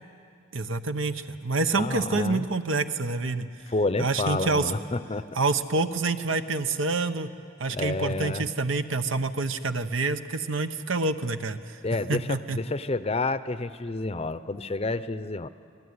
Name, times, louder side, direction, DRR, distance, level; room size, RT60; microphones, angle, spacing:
voice 1, 0.5-3.5 4.0-4.7 5.3-7.3 7.6-11.8 12.1-12.6, right 3 dB, 80° right, 9 dB, 1.1 m, -27 dB
voice 2, 1.7-2.5 3.7-5.3 7.7-8.4 11.8-15.5, left 2 dB, 30° left, 14 dB, 0.6 m, -29 dB
28.5 x 19.5 x 9.7 m, 2.5 s
head